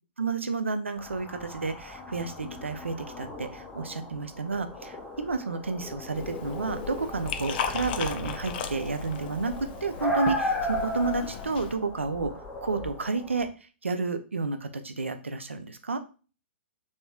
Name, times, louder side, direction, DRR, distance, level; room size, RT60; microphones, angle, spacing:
voice 1, 0.2-12.3 12.6-13.5 13.8-16.0, right 4 dB, 90° right, 8 dB, 0.4 m, -31 dB
sound 1, 1.0-13.5, left 1 dB, 15° left, 0.7 m, -36 dB
Liquid, 6.1-11.7, left 7 dB, 50° left, 0.4 m, -36 dB
3.4 x 2.6 x 2.2 m, 0.35 s
figure-of-eight pair, 115°, 6 cm